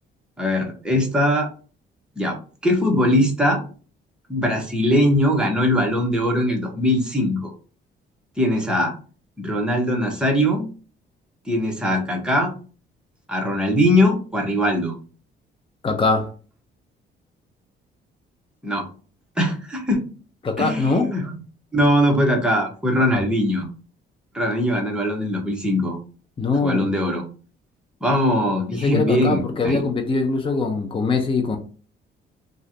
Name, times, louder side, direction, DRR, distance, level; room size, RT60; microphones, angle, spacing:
voice 1, 0.4-1.5 2.2-2.4 2.6-3.6 4.3-7.5 8.4-8.9 9.4-10.7 11.5-12.5 13.3-15.0 18.6-18.9 19.4-20.0 20.6-21.2 21.7-23.7 24.3-26.0 26.6-27.2 28.0-29.8, equal, 5° right, 0 dB, 1.1 m, -21 dB
voice 2, 15.8-16.3 20.4-21.1 26.4-27.0 28.7-31.6, left 3 dB, 25° left, 4 dB, 0.6 m, -22 dB
3.1 x 2.5 x 2.8 m, 0.38 s
cardioid pair, 90°, 20 cm